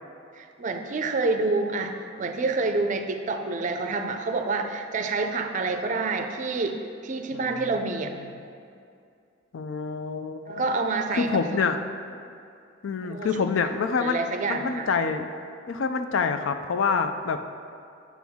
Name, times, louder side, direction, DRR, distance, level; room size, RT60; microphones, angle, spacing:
voice 1, 0.3-8.1 10.5-11.7 13.1-13.4 14.0-14.9, right 3 dB, 40° right, 6 dB, 0.4 m, -28 dB
voice 2, 7.3-7.7 9.5-10.6 11.1-11.8 12.8-14.2 14.5-15.2 15.7-17.4, left 5 dB, 75° left, 8 dB, 0.4 m, -26 dB
7.2 x 6.0 x 3.5 m, 2.4 s
head